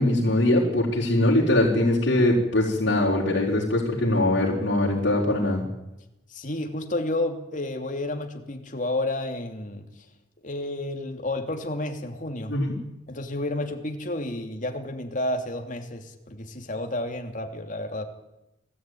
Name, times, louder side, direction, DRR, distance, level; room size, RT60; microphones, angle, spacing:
voice 1, 0.0-5.6 12.5-12.7, left 1 dB, 65° left, -5 dB, 4.3 m, -22 dB
voice 2, 6.3-9.9 10.4-12.5 13.1-18.0, left 1 dB, 40° left, 4 dB, 2.9 m, -31 dB
21.0 x 14.5 x 9.3 m, 0.91 s
head